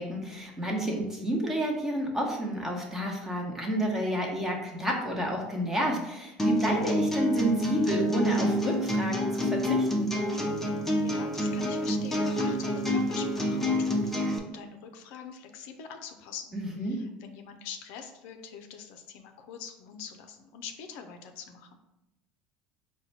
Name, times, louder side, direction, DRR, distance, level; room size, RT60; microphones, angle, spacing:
voice 1, 0.0-10.2 16.5-17.0, right 1 dB, 10° right, -1 dB, 1.0 m, -30 dB
sound 1, 6.4-14.4, equal, 10° left, 0.6 m, -28 dB
voice 2, 11.0-21.8, left 7 dB, 70° left, 6 dB, 0.5 m, -44 dB
4.1 x 2.2 x 4.0 m, 0.96 s
supercardioid pair, 110°, 3 cm